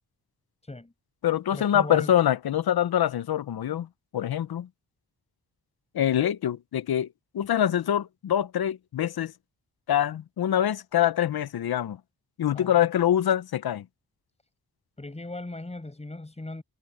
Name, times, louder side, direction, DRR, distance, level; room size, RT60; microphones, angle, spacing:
voice 1, 0.6-0.9 1.5-2.1 12.5-12.8 15.0-16.6, left 2 dB, 15° left, 5.9 m, -38 dB
voice 2, 1.2-3.9 4.1-4.7 5.9-7.1 7.3-9.3 9.9-12.0 12.4-13.8, left 10 dB, 80° left, 0.8 m, -25 dB
wide cardioid pair, 130°, 37 cm